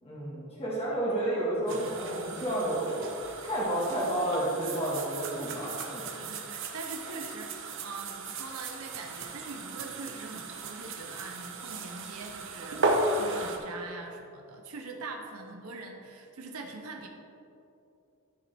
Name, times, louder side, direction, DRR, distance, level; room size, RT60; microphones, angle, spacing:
voice 1, 0.0-3.1 3.4-6.1, right 1 dB, 30° left, -6 dB, 1.6 m, -31 dB
sound 1, 1.7-13.6, right 2 dB, 60° right, 0.9 m, -35 dB
voice 2, 6.1-17.1, right 3 dB, 85° right, 2 dB, 0.8 m, -43 dB
13.0 x 5.0 x 3.4 m, 2.7 s
head